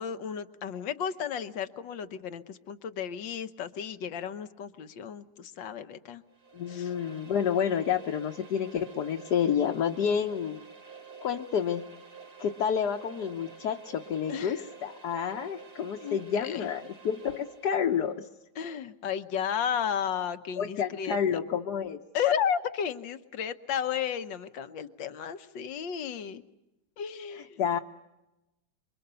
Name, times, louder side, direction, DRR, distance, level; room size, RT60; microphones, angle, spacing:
voice 1, 0.0-6.2 6.7-6.9 14.3-14.6 16.0-16.7 18.6-21.2 22.1-26.4 27.0-27.6, left 8 dB, 80° left, 11 dB, 1.8 m, -33 dB
sound 1, 6.3-17.9, right 5 dB, 55° right, 3.8 m, -49 dB
voice 2, 6.5-10.6 11.2-11.8 12.4-18.3 20.6-22.0 27.3-27.8, left 8 dB, 65° left, 3 dB, 1.5 m, -29 dB
26.5 x 24.5 x 6.9 m, 0.96 s
omnidirectional pair, 2.0 m